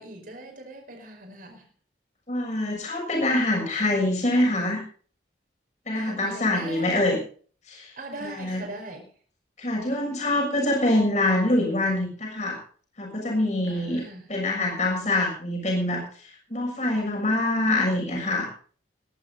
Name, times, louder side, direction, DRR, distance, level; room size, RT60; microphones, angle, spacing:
voice 1, 0.0-1.7 5.9-7.0 8.0-9.1 13.6-14.3, right 1 dB, 45° right, 4 dB, 5.3 m, -40 dB
voice 2, 2.3-4.8 5.9-7.2 7.7-7.9 8.2-8.6 9.6-12.6 13.0-14.0 14.3-18.5, left 1 dB, 40° left, -1 dB, 6.7 m, -25 dB
20.5 x 12.0 x 4.0 m, 0.43 s
head